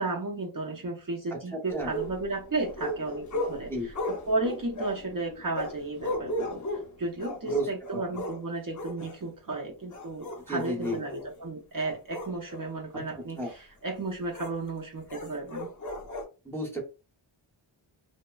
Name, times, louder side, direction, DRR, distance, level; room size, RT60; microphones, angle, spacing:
voice 1, 0.0-3.9 4.3-15.7, right 2 dB, 45° right, 0.6 m, -34 dB
voice 2, 1.5-1.9 3.7-3.9 7.4-7.7 7.9-8.0 10.5-11.0 12.9-13.0 13.4-13.5 16.4-16.8, right 1 dB, 5° left, 0.7 m, -32 dB
sound 1, 1.7-8.4 8.8-9.2 9.8-11.3 11.8-12.7 13.4-13.5 14.3-14.5 15.1-16.2, equal, 40° left, 0.6 m, -36 dB
3.1 x 2.0 x 2.2 m
wide cardioid pair, 100°, 48 cm